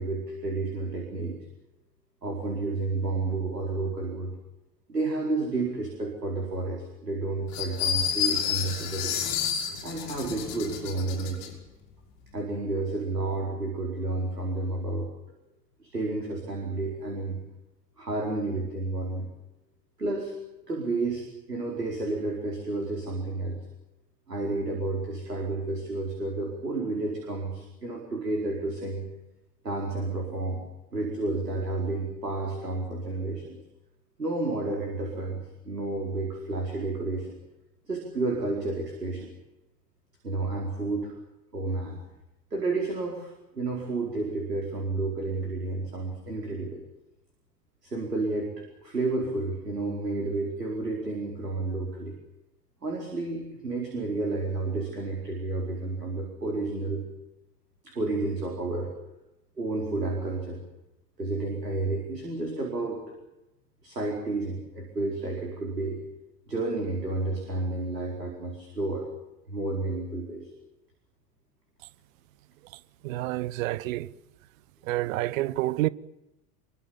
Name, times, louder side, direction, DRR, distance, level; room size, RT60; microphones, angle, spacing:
voice 1, 0.0-1.4 2.2-4.3 4.9-9.2 9.8-11.6 12.3-15.1 15.8-17.4 18.0-19.3 20.0-20.3 20.7-23.6 24.3-29.1 29.6-30.6 30.9-33.6 34.2-37.4 37.9-39.3 40.2-41.1 41.5-42.0 42.5-46.8 47.8-52.2 52.8-57.0 57.8-58.9 59.6-60.6 61.2-63.1 63.8-66.0 66.5-69.1 69.5-70.5, right 2 dB, 85° right, 4.8 m, -31 dB
sound 1, 7.5-11.5, left 8 dB, 50° left, 5.9 m, -30 dB
voice 2, 73.0-74.1 74.9-75.9, right 17 dB, 55° right, 1.0 m, -28 dB
26.5 x 23.5 x 7.2 m
figure-of-eight pair, 75°, 47 cm